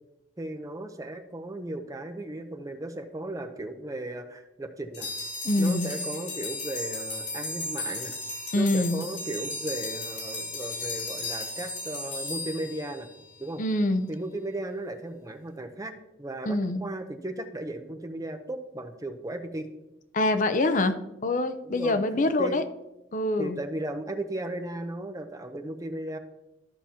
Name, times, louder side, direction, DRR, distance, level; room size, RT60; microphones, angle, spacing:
voice 1, 0.4-5.2 5.6-8.2 8.5-13.1 13.4-13.6 14.1-15.9 16.2-19.7 21.6-22.0 22.4-22.6 23.4-26.2, right 1 dB, 20° right, 7 dB, 0.6 m, -36 dB
sound 1, 4.9-13.5, left 2 dB, 65° left, 2.4 m, -35 dB
voice 2, 5.4-5.9 8.5-9.0 13.6-14.1 16.4-16.8 20.1-20.9 21.2-22.6 23.1-23.6, left 2 dB, 45° left, 10 dB, 0.6 m, -25 dB
13.5 x 5.9 x 2.8 m, 0.93 s
head